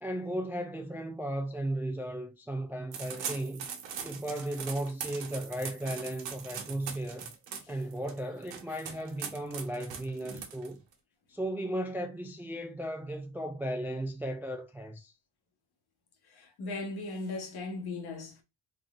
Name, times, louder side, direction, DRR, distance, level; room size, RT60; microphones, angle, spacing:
voice 1, 0.0-3.7 4.0-7.3 7.7-10.8 11.3-15.1, right 1 dB, 5° right, 0.3 m, -35 dB
sound 1, 2.9-10.9, right 7 dB, 80° right, 1.1 m, -41 dB
voice 2, 16.3-18.4, left 3 dB, 60° left, 1.4 m, -38 dB
3.8 x 3.7 x 2.4 m
cardioid pair, 125°, 43 cm